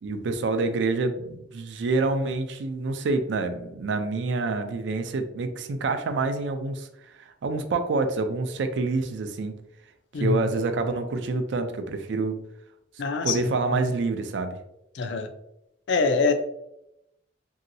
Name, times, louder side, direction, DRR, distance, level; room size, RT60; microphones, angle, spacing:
voice 1, 0.0-6.9 7.4-9.6 10.2-12.4 13.2-14.6, right 3 dB, 70° right, 8 dB, 0.4 m, -27 dB
voice 2, 10.1-10.4 13.0-13.9 14.9-15.3 15.9-16.3, left 4 dB, 70° left, 8 dB, 0.4 m, -25 dB
3.0 x 2.7 x 2.6 m, 0.83 s
head